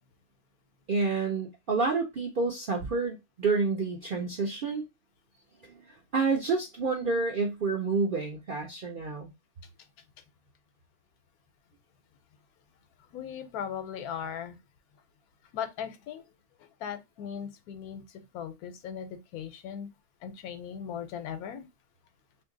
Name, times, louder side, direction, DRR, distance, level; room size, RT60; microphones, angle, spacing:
voice 1, 0.9-4.9 5.6-5.7 6.1-9.3, right 4 dB, 65° right, 0.5 m, -29 dB
voice 2, 13.1-14.6 15.5-16.2 16.8-18.0 18.3-19.9 20.2-21.7, left 8 dB, 80° left, 1.1 m, -38 dB
2.8 x 2.6 x 3.7 m
omnidirectional pair, 1.6 m